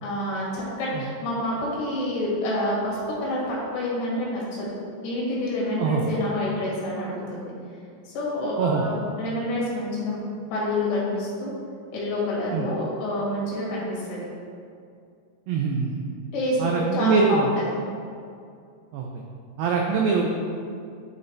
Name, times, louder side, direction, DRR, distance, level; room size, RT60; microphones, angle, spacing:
voice 1, 0.0-4.7 5.0-7.5 8.1-10.2 10.5-11.5 11.9-14.2 16.3-17.4, left 1 dB, 85° left, -6 dB, 3.9 m, -28 dB
voice 2, 15.5-16.0 16.6-17.5 18.9-19.1 19.6-20.4, right 5 dB, 85° right, 0 dB, 2.0 m, -23 dB
10.5 x 3.9 x 3.3 m, 2.4 s
omnidirectional pair, 4.8 m